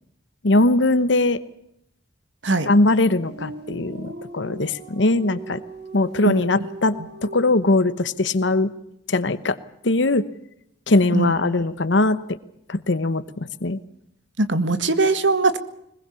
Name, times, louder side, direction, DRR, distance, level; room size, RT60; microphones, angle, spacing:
voice 1, 0.4-1.4 2.6-5.6 5.9-8.7 9.1-9.6 9.8-10.2 10.9-12.2 12.7-13.8, left 2 dB, 70° left, 13 dB, 1.0 m, -20 dB
sound 1, 2.7-7.5, right 1 dB, 60° right, 4.0 m, -38 dB
voice 2, 14.4-15.6, right 3 dB, 75° right, 12 dB, 1.7 m, -20 dB
22.0 x 21.0 x 7.0 m, 0.77 s
head